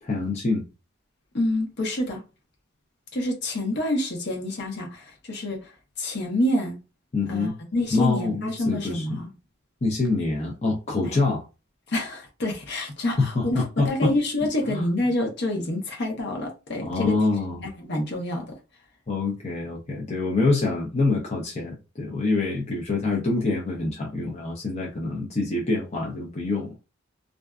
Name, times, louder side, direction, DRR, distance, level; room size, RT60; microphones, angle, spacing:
voice 1, 0.0-0.6 7.1-7.6 7.9-9.2 9.8-11.4 13.2-14.1 14.7-14.9 16.8-17.6 19.1-26.8, left 3 dB, 35° left, 0.6 m, -25 dB
voice 2, 1.3-2.2 3.1-5.7 6.0-6.8 7.3-9.3 11.0-11.2 11.9-17.1 17.5-18.5, left 1 dB, 60° left, 0.8 m, -27 dB
2.5 x 2.3 x 2.3 m
head